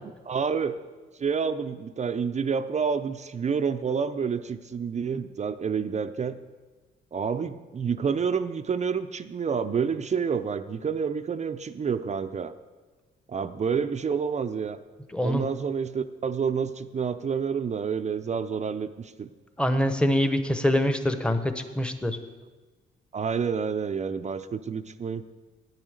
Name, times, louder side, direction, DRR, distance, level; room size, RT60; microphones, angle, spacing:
voice 1, 0.3-0.8 1.2-6.4 7.1-12.5 13.3-14.8 15.2-19.3 23.1-25.3, right 6 dB, 35° right, 10 dB, 0.5 m, -28 dB
voice 2, 15.1-15.4 19.6-22.2, left 1 dB, 5° left, 8 dB, 1.0 m, -24 dB
9.7 x 8.9 x 6.5 m, 1.3 s
cardioid pair, 90°, 20 cm